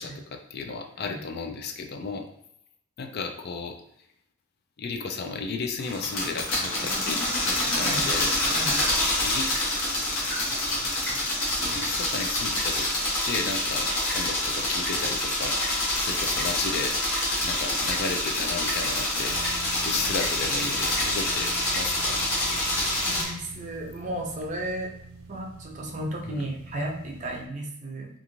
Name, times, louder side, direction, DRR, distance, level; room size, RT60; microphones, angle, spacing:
voice 1, 0.0-2.3 3.0-3.8 4.8-8.3 9.2-9.6 11.7-15.6 16.0-17.0 17.4-19.4 19.8-22.2 26.2-26.5, left 4 dB, 50° left, 4 dB, 0.3 m, -34 dB
sound 1, 5.8-23.3, left 1 dB, 65° left, 0.9 m, -27 dB
voice 2, 7.7-8.1 8.5-8.8 23.0-24.9 25.3-28.1, right 1 dB, 35° right, 0 dB, 0.5 m, -34 dB
sound 2, 8.6-24.0, equal, 10° left, 0.8 m, -43 dB
sound 3, 19.3-27.5, right 4 dB, 90° right, 0.4 m, -45 dB
2.4 x 2.4 x 2.9 m, 0.74 s
head